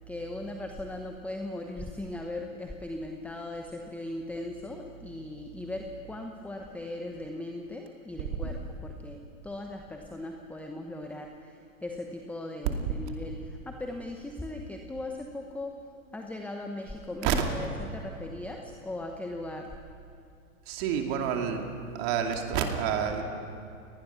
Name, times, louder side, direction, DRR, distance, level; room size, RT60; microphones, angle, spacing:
voice 1, 0.1-15.7 16.1-19.8, left 2 dB, 5° left, 3 dB, 1.0 m, -38 dB
voice 2, 20.7-21.7 21.9-23.2, right 8 dB, 45° right, 3 dB, 2.6 m, -28 dB
27.5 x 19.5 x 6.0 m, 2.5 s
hypercardioid pair, 115°, 43 cm